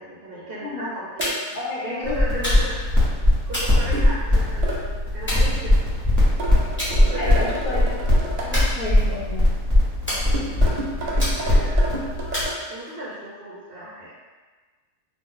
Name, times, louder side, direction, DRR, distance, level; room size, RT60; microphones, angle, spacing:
voice 1, 0.0-1.6 1.8-5.8 6.9-7.9 11.1-12.1 12.7-14.1, right 1 dB, 55° right, -6 dB, 0.7 m, -36 dB
voice 2, 0.5-0.9 1.5-2.5 7.2-7.9 8.4-9.4, left 2 dB, 70° left, -5 dB, 1.2 m, -30 dB
sound 1, 1.2-1.6 2.4-2.9 3.5-4.5 5.3-6.1 6.8-7.0 7.4-7.7 8.5-9.3 10.1-10.7 11.2-11.7 12.3-13.1, equal, 10° left, 0.9 m, -30 dB
sound 2, 1.2-1.4 3.9-4.2 4.6-4.8 6.4-8.5 10.3-12.6, right 1 dB, 80° right, 0.3 m, -31 dB
sound 3, 2.0-12.4, left 1 dB, 15° right, 1.2 m, -21 dB
2.7 x 2.4 x 3.7 m, 1.4 s
omnidirectional pair, 1.4 m